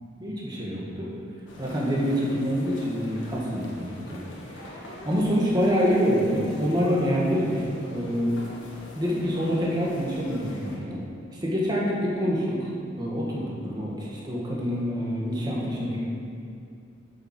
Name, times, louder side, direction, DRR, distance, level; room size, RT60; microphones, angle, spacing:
voice 1, 0.2-1.1 1.6-4.2 4.5-7.6 7.9-8.3 9.0-11.0 11.4-12.7 13.0-16.0, equal, 20° right, -5 dB, 1.8 m, -26 dB
sound 1, 1.5-10.8, left 1 dB, 80° left, 1.7 m, -44 dB
9.5 x 7.5 x 4.6 m, 2.5 s
head